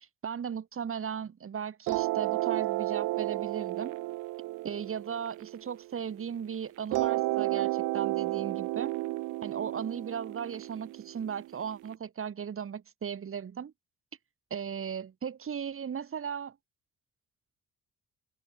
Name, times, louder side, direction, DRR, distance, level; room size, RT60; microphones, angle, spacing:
voice 1, 0.2-4.0 4.6-8.9 9.4-13.7 14.5-16.6, right 7 dB, 45° right, 2.4 m, -37 dB
sound 1, 1.9-6.2 6.9-11.9, right 20 dB, 90° right, 0.6 m, -32 dB
cardioid pair, 90°, 30 cm